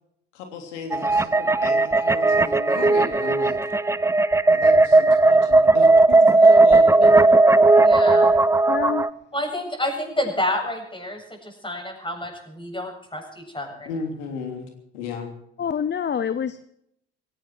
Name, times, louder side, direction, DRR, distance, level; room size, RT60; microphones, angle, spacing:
voice 1, 0.3-3.6 4.5-7.4 13.8-15.3, left 5 dB, 85° left, 4 dB, 3.2 m, -35 dB
sound 1, 0.9-9.1, right 2 dB, 10° right, 0.6 m, -16 dB
voice 2, 7.8-8.3 9.3-13.9, left 1 dB, 15° left, 2 dB, 7.6 m, -29 dB
voice 3, 8.7-9.0 15.6-16.7, left 7 dB, 30° left, 15 dB, 0.8 m, -26 dB
17.5 x 16.5 x 4.6 m, 0.74 s
hypercardioid pair, 65°, 36 cm